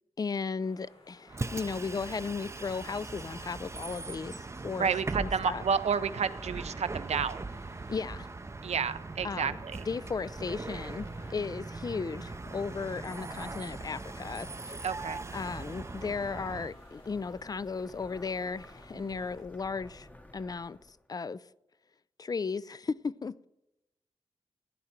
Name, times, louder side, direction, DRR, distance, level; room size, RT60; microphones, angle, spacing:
voice 1, 0.2-4.9 5.2-5.6 7.9-8.3 9.2-9.6 9.9-14.8 15.3-20.1 20.3-21.4 22.2-23.5, left 5 dB, 35° left, 0.4 m, -35 dB
sound 1, 0.6-19.4, left 2 dB, 70° left, 3.6 m, -59 dB
Bus, 1.3-16.7, right 3 dB, 25° right, 0.5 m, -40 dB
voice 2, 4.7-7.5 8.6-9.8 14.8-15.2 18.9-19.2, right 6 dB, 85° right, 0.7 m, -31 dB
sound 2, 7.7-21.1, left 1 dB, 15° left, 0.9 m, -54 dB
15.5 x 10.0 x 4.4 m
wide cardioid pair, 90°, 11 cm